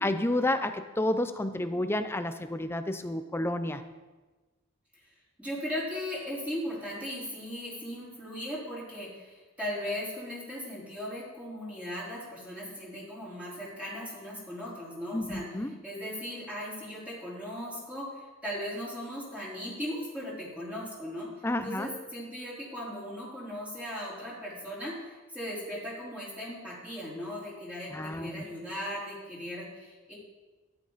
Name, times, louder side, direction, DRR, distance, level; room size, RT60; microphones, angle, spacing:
voice 1, 0.0-3.8 15.1-15.7 21.4-21.9 27.9-28.4, left 1 dB, 10° left, 9 dB, 0.5 m, -30 dB
voice 2, 5.4-30.1, equal, 5° right, -8 dB, 4.2 m, -38 dB
14.5 x 11.5 x 4.1 m, 1.2 s
head